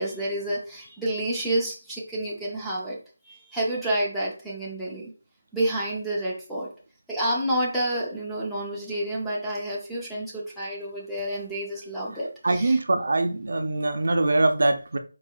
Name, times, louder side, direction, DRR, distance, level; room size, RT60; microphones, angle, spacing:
voice 1, 0.0-3.0 3.3-5.1 5.5-6.7 7.1-12.8, right 1 dB, ahead, 0.5 m, -29 dB
voice 2, 12.4-15.0, right 2 dB, 50° right, 0.5 m, -23 dB
4.6 x 4.6 x 2.3 m
figure-of-eight pair, 180°, 0 cm